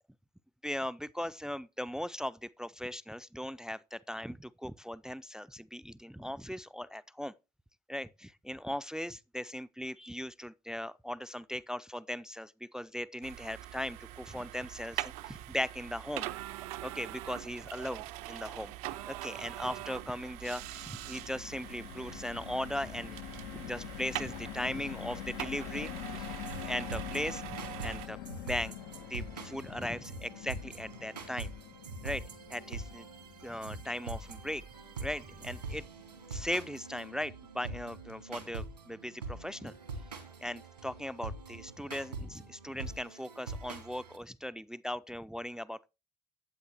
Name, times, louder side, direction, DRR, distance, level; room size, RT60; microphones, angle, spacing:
voice 1, 0.6-7.3 7.9-16.3 16.8-18.7 19.1-23.2 23.6-27.4 27.8-28.2 28.4-28.8 29.1-31.5 32.0-32.2 32.5-33.1 33.4-34.6 35.0-35.8 36.3-39.7 40.4-45.9, left 1 dB, 5° right, 0.5 m, -38 dB
sound 1, 13.2-28.1, right 15 dB, 65° right, 0.7 m, -43 dB
sound 2, 20.0-36.2 36.6-36.8 37.0-37.3, left 15 dB, 60° left, 0.5 m, -46 dB
sound 3, 26.1-44.2, right 3 dB, 85° right, 1.9 m, -44 dB
12.5 x 8.5 x 3.0 m
figure-of-eight pair, 50°, 21 cm